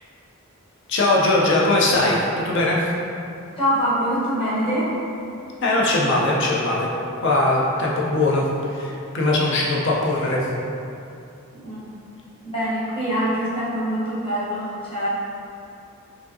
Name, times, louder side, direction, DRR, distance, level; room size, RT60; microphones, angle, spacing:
voice 1, 0.9-2.2 2.4-2.8 5.6-6.9 7.2-8.4 8.7-10.4, left 2 dB, 55° left, -4 dB, 0.6 m, -20 dB
voice 2, 3.6-4.9 11.5-11.9 12.4-15.1, equal, 25° left, -9 dB, 0.9 m, -24 dB
4.9 x 2.6 x 2.7 m, 2.7 s
head